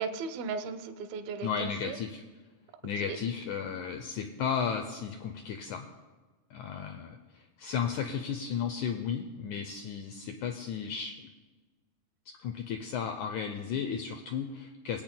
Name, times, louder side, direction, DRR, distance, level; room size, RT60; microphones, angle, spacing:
voice 1, 0.0-2.0 3.0-3.2, right 5 dB, 90° right, 8 dB, 2.5 m, -36 dB
voice 2, 1.4-2.2 2.8-5.9 6.5-11.3 12.4-15.0, left 7 dB, 85° left, 5 dB, 1.7 m, -34 dB
21.0 x 8.7 x 2.2 m, 1.3 s
omnidirectional pair, 4.0 m